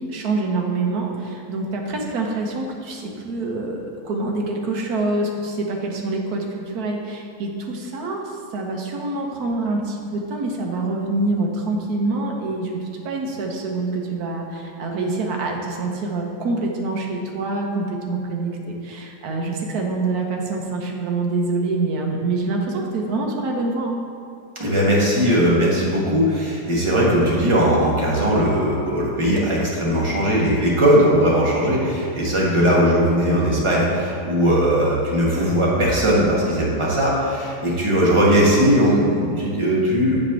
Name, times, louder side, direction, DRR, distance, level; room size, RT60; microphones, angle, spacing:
voice 1, 0.1-24.0, right 3 dB, 70° right, 1 dB, 1.3 m, -26 dB
voice 2, 24.6-40.1, equal, 20° right, -5 dB, 1.1 m, -19 dB
7.6 x 3.3 x 5.8 m, 2.5 s
omnidirectional pair, 1.7 m